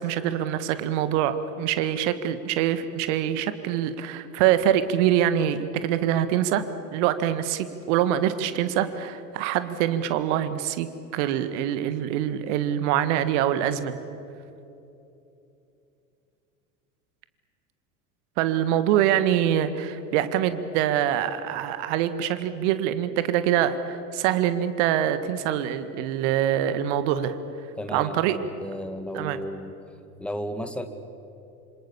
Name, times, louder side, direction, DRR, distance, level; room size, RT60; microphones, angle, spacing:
voice 1, 0.0-6.6 6.9-14.0 18.4-27.3 27.9-28.4 29.1-29.4, right 10 dB, 50° right, 11 dB, 1.8 m, -24 dB
voice 2, 27.8-29.7 30.2-30.9, equal, 5° left, 8 dB, 2.0 m, -34 dB
27.0 x 26.5 x 7.2 m, 2.9 s
figure-of-eight pair, 80°, 45 cm